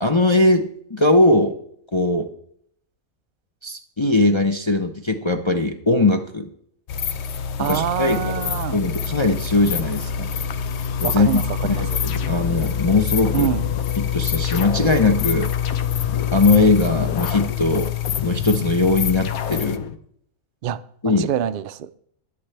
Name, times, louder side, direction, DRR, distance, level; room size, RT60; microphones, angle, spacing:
voice 1, 0.0-1.6 1.9-2.3 3.6-6.5 7.7-10.3 11.0-13.5 14.0-15.5 16.3-17.9 18.2-19.8 21.0-21.3, left 2 dB, 30° left, 0.6 m, -20 dB
sound 1, 6.9-19.8, left 8 dB, 60° left, 0.8 m, -25 dB
voice 2, 7.6-8.8 11.0-11.9 13.3-13.7 20.6-21.9, right 11 dB, 65° right, 0.5 m, -26 dB
sound 2, 11.4-12.8 13.2-14.0 14.4-16.4 16.8-18.8 19.2-20.0, left 7 dB, 85° left, 1.2 m, -32 dB
20.5 x 7.4 x 3.3 m
omnidirectional pair, 1.4 m